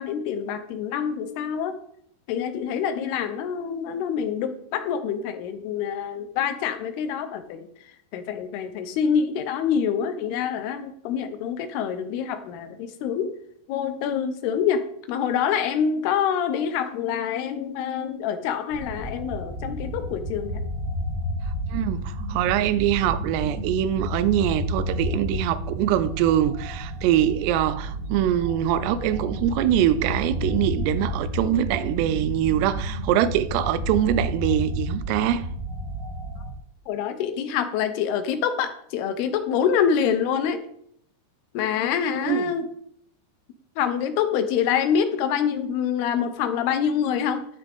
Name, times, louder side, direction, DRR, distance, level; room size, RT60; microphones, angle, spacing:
voice 1, 0.0-1.7 2.3-7.7 8.1-13.3 13.7-14.8 15.1-20.6 36.9-40.6 41.5-42.7 43.8-47.5, left 7 dB, 75° left, 2.9 m, -26 dB
sound 1, 18.7-36.5, equal, 45° right, 1.3 m, -31 dB
voice 2, 21.7-35.5 42.2-42.5, right 11 dB, 85° right, 2.8 m, -23 dB
12.0 x 9.0 x 3.6 m
omnidirectional pair, 4.8 m